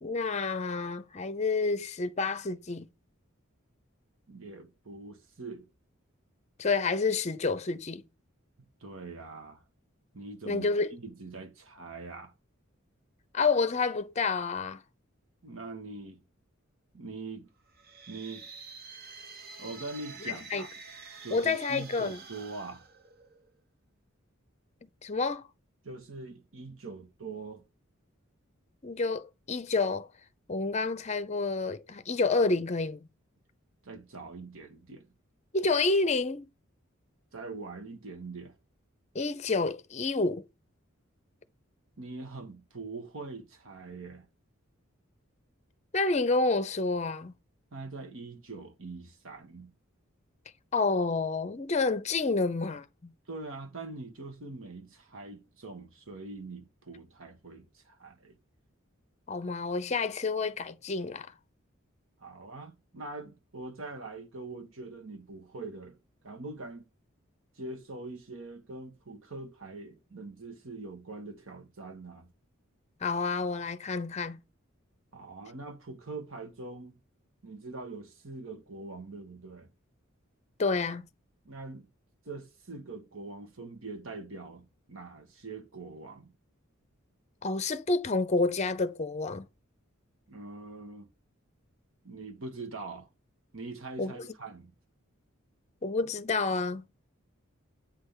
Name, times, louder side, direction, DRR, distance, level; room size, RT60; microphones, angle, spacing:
voice 1, 0.0-2.9 6.6-8.0 10.5-11.0 13.3-14.8 20.5-20.6 21.3-22.2 24.8-25.5 28.8-30.1 30.5-33.1 35.5-36.5 39.1-40.4 45.9-47.3 50.7-53.1 59.3-61.3 73.0-74.4 80.6-81.1 87.4-89.4 94.0-94.3 95.8-96.8, left 3 dB, 35° left, 0.6 m, -29 dB
voice 2, 4.3-5.6 8.8-9.6 10.1-12.3 15.4-16.2 16.9-17.5 18.1-18.5 19.6-20.7 21.2-22.8 25.8-27.6 33.8-35.1 37.3-38.5 42.0-44.3 47.7-49.7 53.3-58.3 62.2-66.0 66.2-66.9 67.6-72.3 75.1-77.0 77.4-79.7 81.4-81.8 82.2-86.3 90.3-91.1 92.0-93.1 93.5-94.7, right 3 dB, 75° right, 1.4 m, -43 dB
sound 1, 17.7-23.6, right 5 dB, 50° right, 1.0 m, -48 dB
8.5 x 3.4 x 5.7 m
head